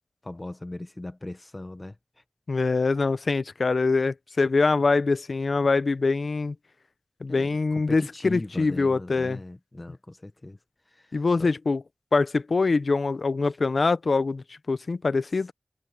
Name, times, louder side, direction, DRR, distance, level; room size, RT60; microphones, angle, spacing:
voice 1, 0.2-2.2 2.5-2.7 7.3-10.6 10.9-11.5 13.4-13.6, left 2 dB, 35° left, 1.3 m, -39 dB
voice 2, 2.5-6.5 7.2-9.4 11.1-11.8 12.1-15.5, left 3 dB, 85° left, 0.7 m, -24 dB
wide cardioid pair, 75°, 0 cm